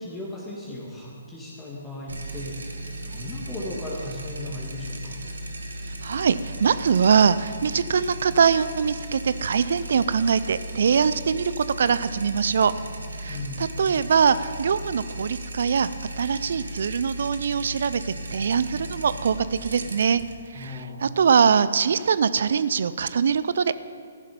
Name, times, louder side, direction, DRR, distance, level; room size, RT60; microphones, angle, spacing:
voice 1, 0.0-5.2 13.3-13.7 20.5-21.1, left 2 dB, 15° left, -5 dB, 2.5 m, -36 dB
sound 1, 2.1-21.4, right 1 dB, 80° right, 1.5 m, -36 dB
voice 2, 6.0-12.7 13.2-15.9 16.2-20.2 20.6-23.9, right 6 dB, 60° right, 15 dB, 0.5 m, -22 dB
14.5 x 11.5 x 5.3 m, 2.4 s
figure-of-eight pair, 135°, 0 cm